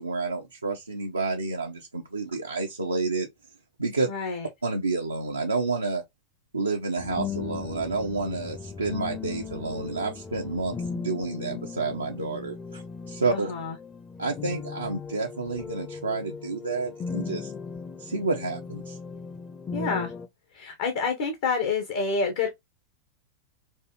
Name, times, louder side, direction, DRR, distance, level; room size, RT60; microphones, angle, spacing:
voice 1, 0.0-3.3 3.8-4.1 4.6-6.0 6.5-13.5 14.2-17.5 18.0-19.0, right 3 dB, 80° right, 0.6 m, -29 dB
voice 2, 4.1-4.5 13.3-13.7 19.7-20.1 20.5-22.5, left 4 dB, 55° left, 1.0 m, -28 dB
sound 1, 7.0-20.3, left 5 dB, 20° left, 0.7 m, -37 dB
4.5 x 2.6 x 3.0 m
figure-of-eight pair, 90°, 0 cm